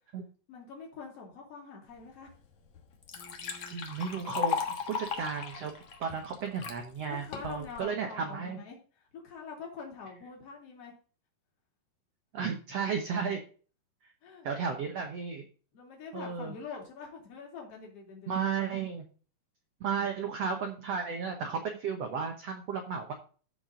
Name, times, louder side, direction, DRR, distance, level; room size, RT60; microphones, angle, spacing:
voice 1, 0.5-2.3 6.5-6.7 7.1-10.9 14.2-14.9 15.7-18.4, left 5 dB, 40° left, -1 dB, 3.3 m, -45 dB
Liquid, 2.3-2.4 2.7-6.8 7.3-7.8, left 7 dB, 65° left, 1.5 m, -36 dB
voice 2, 3.7-4.6 4.9-5.7 6.0-8.6 12.3-13.4 14.4-15.4 16.1-16.5 18.3-19.0 19.8-23.1, right 6 dB, 85° right, 4 dB, 1.4 m, -33 dB
14.0 x 5.1 x 3.8 m, 0.38 s
omnidirectional pair, 4.5 m